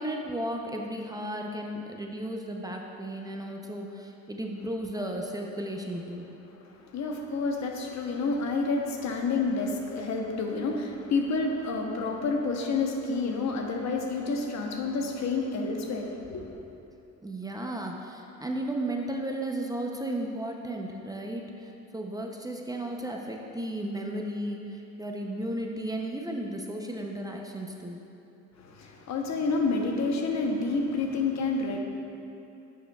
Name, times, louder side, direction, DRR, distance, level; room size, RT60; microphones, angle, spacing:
voice 1, 0.0-6.3 17.2-28.0, right 1 dB, 10° right, 1 dB, 0.6 m, -34 dB
voice 2, 6.7-16.6 28.6-31.8, left 3 dB, 65° left, 2 dB, 0.9 m, -29 dB
9.9 x 6.5 x 2.3 m, 2.8 s
cardioid pair, 90°, 30 cm